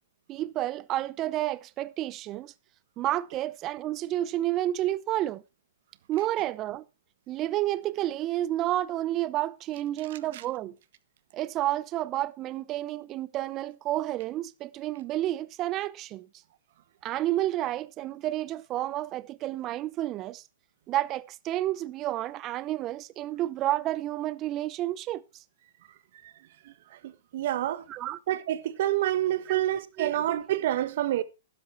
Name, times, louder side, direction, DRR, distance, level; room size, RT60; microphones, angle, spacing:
voice 1, 0.3-2.5 3.0-5.4 6.1-6.8 7.3-10.7 11.3-16.3 17.0-20.4 20.9-25.2 27.9-28.2 29.5-29.6 30.0-30.2, right 14 dB, 30° right, 0.7 m, -30 dB
voice 2, 27.3-27.8 28.3-31.2, right 13 dB, 60° right, 1.4 m, -27 dB
12.0 x 10.5 x 4.4 m
hypercardioid pair, 130°, 0 cm